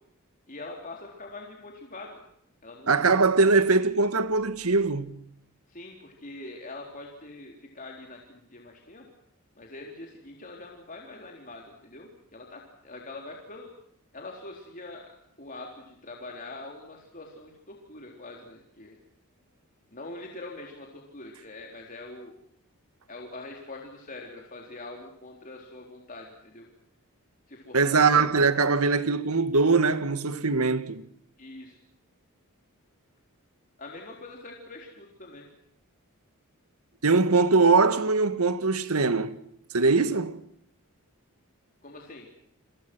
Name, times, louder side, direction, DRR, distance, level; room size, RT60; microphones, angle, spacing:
voice 1, 0.5-2.2 2.6-3.1 5.7-9.1 9.6-13.7 14.1-15.1 15.4-19.0 19.9-22.3 23.1-26.7 27.5-28.3 31.4-31.8 33.8-35.5 41.8-42.3, left 2 dB, 40° left, 3.9 m, -43 dB
voice 2, 2.9-5.2 27.7-31.0 37.0-39.3 39.7-40.4, right 4 dB, 80° right, 1.9 m, -22 dB
30.0 x 24.0 x 6.3 m
head